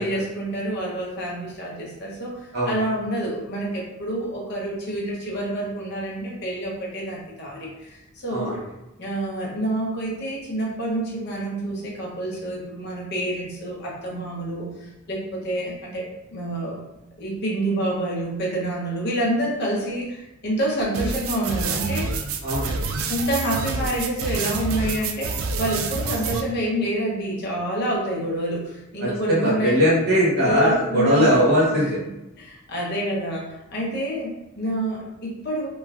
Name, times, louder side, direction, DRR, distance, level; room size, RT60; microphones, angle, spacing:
voice 1, 0.0-8.6 9.0-14.7 15.1-16.0 16.3-16.8 17.2-22.1 23.1-29.9 30.4-31.4 31.7-31.9 32.4-35.7, right 1 dB, 50° left, -4 dB, 0.8 m, -27 dB
sound 1, 20.9-26.4, right 4 dB, 70° right, 0.3 m, -28 dB
voice 2, 22.4-22.8 29.0-32.0, equal, 50° right, -7 dB, 0.8 m, -20 dB
3.1 x 2.2 x 2.3 m, 0.91 s
head